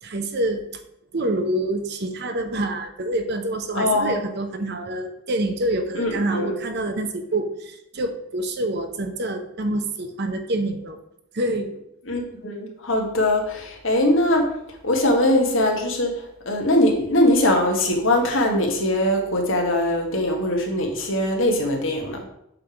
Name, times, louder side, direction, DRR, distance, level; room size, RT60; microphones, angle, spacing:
voice 1, 0.0-0.6 1.1-11.0 11.3-11.8, right 1 dB, 50° right, 7 dB, 0.8 m, -26 dB
voice 2, 3.7-4.1 5.9-6.6 12.1-14.5 14.8-16.1 16.4-22.3, left 1 dB, 60° left, 2 dB, 1.5 m, -21 dB
7.6 x 3.4 x 5.8 m, 0.77 s
head